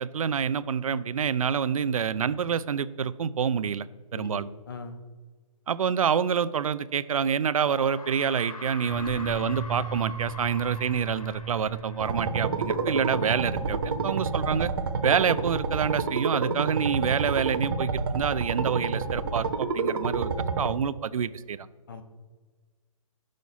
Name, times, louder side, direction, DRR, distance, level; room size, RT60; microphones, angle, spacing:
voice 1, 0.0-3.9 4.1-4.5 5.7-14.7 15.0-20.3 20.6-21.6, right 7 dB, 75° right, 16 dB, 0.5 m, -27 dB
voice 2, 4.1-5.0 21.9-22.0, left 4 dB, 40° left, 7 dB, 0.9 m, -40 dB
sound 1, 6.9-7.0 7.8-13.0, left 3 dB, 90° left, 1.2 m, -43 dB
sound 2, 8.9-15.7, right 4 dB, ahead, 1.1 m, -39 dB
sound 3, 12.0-20.7, right 4 dB, 45° right, 0.9 m, -29 dB
10.0 x 6.4 x 4.1 m, 1.4 s
hypercardioid pair, 180°, 18 cm